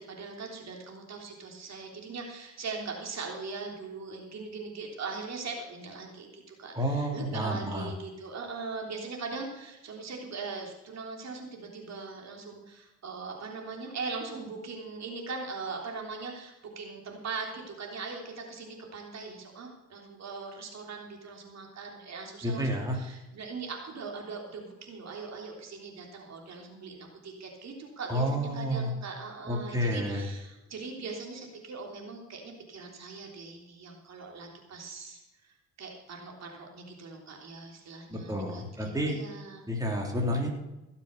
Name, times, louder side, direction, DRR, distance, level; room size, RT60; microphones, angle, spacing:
voice 1, 0.1-39.7, right 4 dB, 60° right, 1 dB, 3.3 m, -40 dB
voice 2, 6.7-7.9 22.4-23.0 28.1-28.9 29.5-30.2 38.1-39.2 39.7-40.5, equal, 10° right, 0 dB, 3.4 m, -30 dB
17.0 x 7.3 x 6.8 m, 0.98 s
cardioid pair, 90°, 30 cm